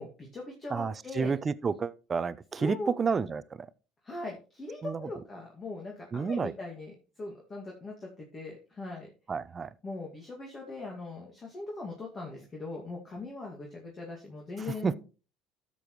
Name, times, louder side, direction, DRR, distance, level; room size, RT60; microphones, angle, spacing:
voice 1, 0.0-1.3 2.6-2.9 4.0-9.1 9.8-15.0, left 2 dB, 25° left, 2.2 m, -40 dB
voice 2, 0.7-3.7 4.8-5.0 6.1-6.5 9.3-9.7 14.8-14.9, right 5 dB, 25° right, 0.5 m, -30 dB
12.5 x 6.9 x 3.1 m
supercardioid pair, 110°, 0 cm